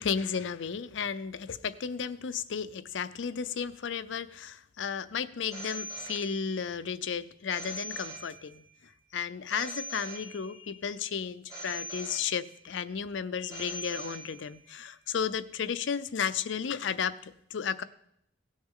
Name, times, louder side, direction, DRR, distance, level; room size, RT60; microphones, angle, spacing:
voice 1, 0.0-8.6 9.1-17.8, left 7 dB, 75° left, 14 dB, 0.5 m, -33 dB
Telephone, 5.5-6.8 7.5-8.8 9.5-10.8 11.5-12.8 13.5-14.7, right 1 dB, 20° right, 1.6 m, -42 dB
17.5 x 6.4 x 3.7 m, 0.71 s
head